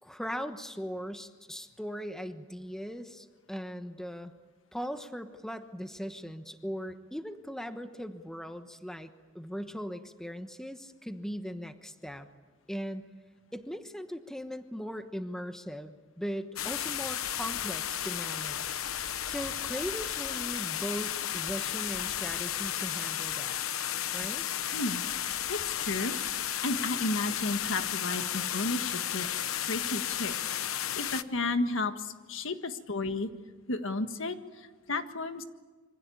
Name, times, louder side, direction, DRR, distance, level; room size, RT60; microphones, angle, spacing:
voice 1, 0.0-4.3 4.7-12.3 12.7-13.0 13.5-18.8 19.2-23.6 24.1-24.4, equal, ahead, 8 dB, 1.1 m, -39 dB
sound 1, 16.6-31.2, left 10 dB, 85° left, 1.0 m, -33 dB
voice 2, 25.5-29.3 29.6-33.3 33.7-35.4, left 2 dB, 65° left, 8 dB, 1.6 m, -33 dB
26.5 x 25.0 x 8.6 m, 1.3 s
head